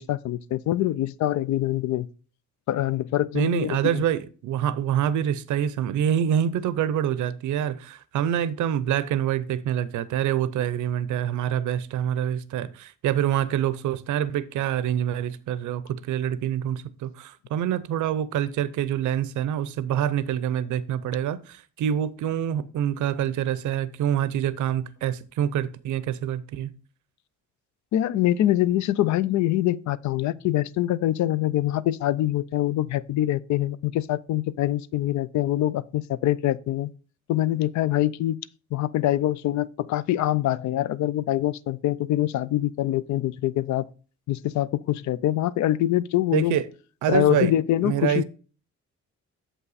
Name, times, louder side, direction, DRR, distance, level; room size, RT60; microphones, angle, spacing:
voice 1, 0.0-2.1 2.7-4.0 27.9-36.9 37.3-38.4 38.7-43.8 44.3-46.6 47.1-48.2, left 13 dB, 70° left, 0.5 m, -24 dB
voice 2, 3.3-26.7 46.3-46.7 47.0-47.5 47.8-48.2, right 10 dB, 85° right, 0.6 m, -26 dB
7.3 x 5.6 x 4.0 m
cardioid pair, 155°, 29 cm